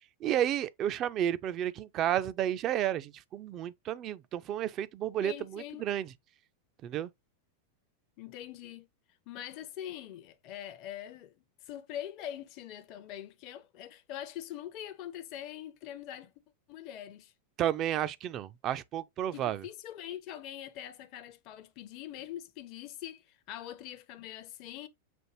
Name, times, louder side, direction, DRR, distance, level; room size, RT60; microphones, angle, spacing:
voice 1, 0.2-6.1 6.8-7.1 17.6-19.6, right 11 dB, 35° right, 0.4 m, -32 dB
voice 2, 5.2-5.9 8.2-8.9 9.3-16.3 16.7-17.3 19.3-24.9, left 11 dB, 40° left, 0.6 m, -43 dB
6.1 x 2.5 x 2.9 m
figure-of-eight pair, 90°, 0 cm